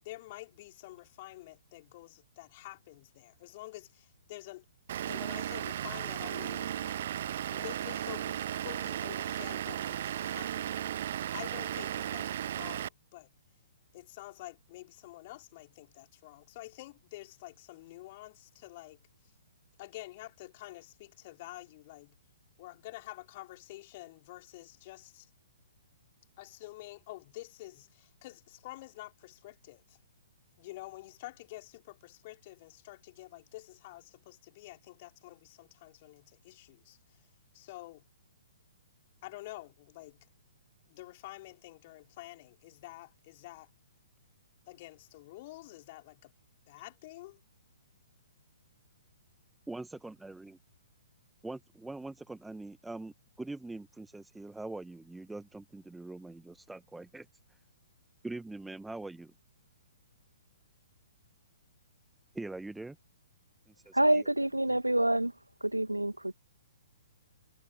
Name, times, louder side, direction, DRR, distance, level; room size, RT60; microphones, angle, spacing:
voice 1, 0.0-4.6 5.1-6.8 7.4-11.0 11.3-13.3 13.9-19.0 19.8-22.1 22.6-25.3 26.4-30.0 30.6-37.2 37.5-38.0 39.2-40.3 40.9-43.7 44.7-46.3 46.7-47.4, left 18 dB, 35° left, 4.6 m, -48 dB
Vehicle / Engine, 4.9-12.9, right 11 dB, 45° right, 0.6 m, -35 dB
voice 2, 49.7-50.6 51.4-57.3 58.2-59.3 62.3-63.0 63.7-64.3 64.6-64.7, right 2 dB, 5° right, 1.6 m, -43 dB
voice 3, 63.9-65.3 65.6-66.3, right 1 dB, 85° right, 2.1 m, -27 dB
figure-of-eight pair, 120°, 0 cm